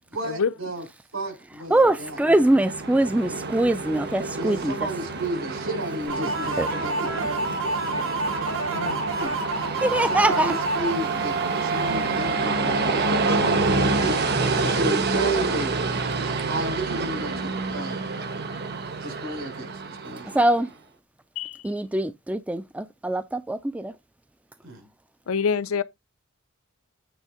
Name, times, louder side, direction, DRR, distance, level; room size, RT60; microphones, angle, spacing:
voice 1, 0.1-0.8 1.1-2.2 4.3-7.1 9.2-9.3 10.0-13.5 14.0-15.8 16.5-18.0 19.0-20.4 24.6-24.8, right 1 dB, 70° right, 4.6 m, -32 dB
voice 2, 1.7-4.7 6.6-6.7 9.8-10.5 20.3-20.7 21.6-23.9, right 1 dB, 5° right, 0.3 m, -23 dB
Train, 1.9-20.5, right 3 dB, 50° right, 1.2 m, -28 dB
sound 1, 6.1-13.7, right 3 dB, 90° right, 4.3 m, -29 dB
voice 3, 25.3-25.8, left 6 dB, 75° left, 0.5 m, -26 dB
9.0 x 3.5 x 4.8 m
head